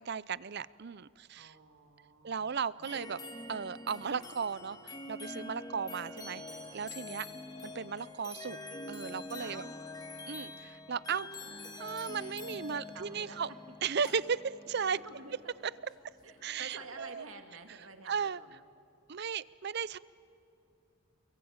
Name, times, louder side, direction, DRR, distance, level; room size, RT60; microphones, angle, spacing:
voice 1, 0.0-1.5 2.2-3.2 3.5-6.4 6.7-7.3 7.6-8.6 8.9-9.6 10.3-13.5 13.8-15.0 16.4-17.3 18.1-18.4 19.1-20.0, right 6 dB, 55° right, 19 dB, 0.6 m, -36 dB
voice 2, 1.3-3.1 9.4-9.9 12.5-13.4 15.0-15.5 16.2-18.6, right 3 dB, 80° right, 6 dB, 2.4 m, -50 dB
sound 1, 2.8-16.9, left 2 dB, 20° left, 1.9 m, -46 dB
29.0 x 23.0 x 8.9 m, 2.5 s
head